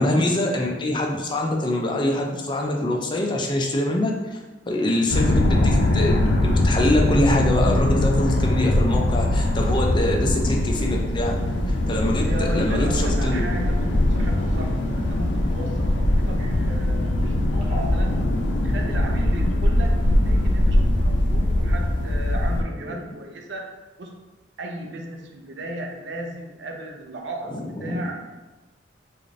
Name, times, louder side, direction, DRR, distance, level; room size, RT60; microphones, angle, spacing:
voice 1, 0.0-4.4 4.7-11.3 11.7-13.5 14.2-14.3 22.9-23.0 27.5-28.1, left 1 dB, 25° left, 0 dB, 0.4 m, -24 dB
sound 1, 5.1-22.6, left 1 dB, 80° left, 0.5 m, -21 dB
voice 2, 12.1-18.3 18.5-23.7 24.0-24.1 24.6-28.2, right 1 dB, 70° right, 2 dB, 0.5 m, -35 dB
sound 2, 13.9-21.2, equal, 35° right, 0.7 m, -37 dB
4.9 x 2.5 x 2.5 m, 1.1 s
head